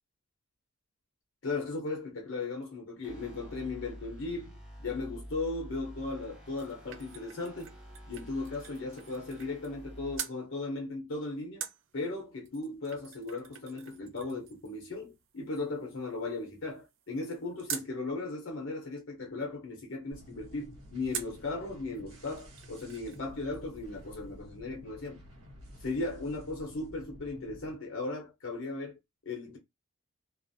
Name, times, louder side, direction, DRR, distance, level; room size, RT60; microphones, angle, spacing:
voice 1, 1.4-7.7 8.1-11.6 11.9-25.2 25.8-29.0 29.3-29.6, left 3 dB, 60° left, 0.7 m, -37 dB
sound 1, 3.0-10.2, equal, 5° right, 0.5 m, -48 dB
sound 2, 6.2-9.9 10.1-10.4 11.6-17.9 21.1-21.5 22.0-22.1 22.3-23.3 23.5-23.6, right 8 dB, 60° right, 0.4 m, -45 dB
sound 3, 20.1-27.7, left 1 dB, 85° right, 1.2 m, -51 dB
2.3 x 2.0 x 2.6 m
head